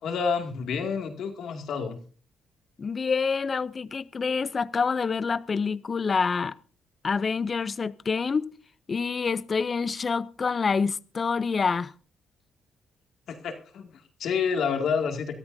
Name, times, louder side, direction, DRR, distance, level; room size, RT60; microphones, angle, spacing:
voice 1, 0.0-2.0 13.3-15.4, left 6 dB, 70° left, 2.3 m, -29 dB
voice 2, 2.8-6.6 7.0-8.5 8.9-11.9, left 5 dB, 35° left, 0.5 m, -27 dB
23.0 x 13.0 x 2.7 m
cardioid pair, 90°, 0 cm